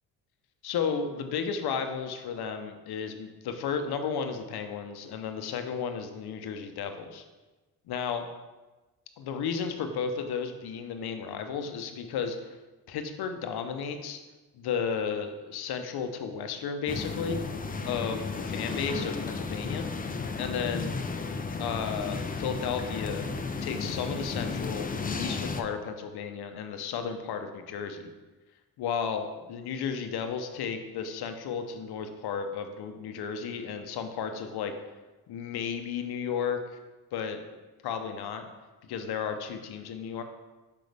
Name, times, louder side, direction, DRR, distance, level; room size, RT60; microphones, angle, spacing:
voice 1, 0.6-7.2 7.9-8.3 9.2-12.5 12.9-14.2 14.5-17.4 17.9-19.9 20.4-21.0 21.6-23.3 23.6-28.1 28.8-34.7 35.3-36.6 37.1-37.4 37.8-38.4 38.9-40.2, left 6 dB, 70° left, 7 dB, 0.9 m, -33 dB
sound 1, 16.9-25.6, left 4 dB, 20° left, 0.6 m, -33 dB
6.3 x 5.6 x 3.4 m, 1.2 s
supercardioid pair, 65°, 40 cm